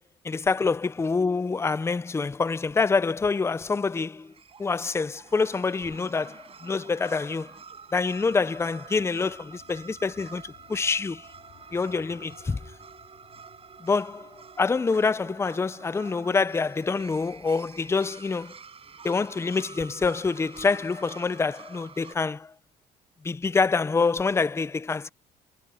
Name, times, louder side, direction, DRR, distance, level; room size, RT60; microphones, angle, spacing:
voice 1, 0.2-4.3 4.6-7.5 7.9-11.3 11.7-12.6 13.8-18.6 19.0-22.5 23.2-25.1, left 4 dB, 15° left, 0.6 m, -26 dB
sound 1, 3.9-22.2, right 6 dB, 35° right, 6.1 m, -48 dB
sound 2, 7.4-16.2, left 11 dB, 65° left, 4.8 m, -59 dB
cardioid pair, 110°, 17 cm